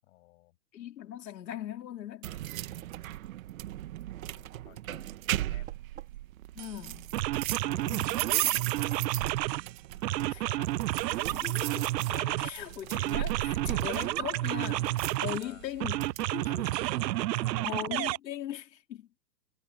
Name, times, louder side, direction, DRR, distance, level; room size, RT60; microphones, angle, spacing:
voice 1, 0.0-0.6 4.1-5.7 9.9-10.7 11.1-11.4 15.4-15.7 16.3-16.7 17.3-17.8, left 18 dB, 45° left, 7.8 m, -55 dB
voice 2, 0.7-2.4 6.6-7.1 7.6-8.3 11.3-14.9 15.2-16.5 17.6-19.1, left 11 dB, 80° left, 3.5 m, -39 dB
sound 1, 2.2-16.3, right 14 dB, 55° right, 1.8 m, -37 dB
sound 2, 2.7-8.4 8.9-9.3, right 10 dB, 20° right, 5.7 m, -56 dB
sound 3, 6.6-6.7 7.1-9.7 10.0-12.6 12.9-15.4 15.8-18.2, right 16 dB, 75° right, 0.6 m, -30 dB
hypercardioid pair, 165°, 50 cm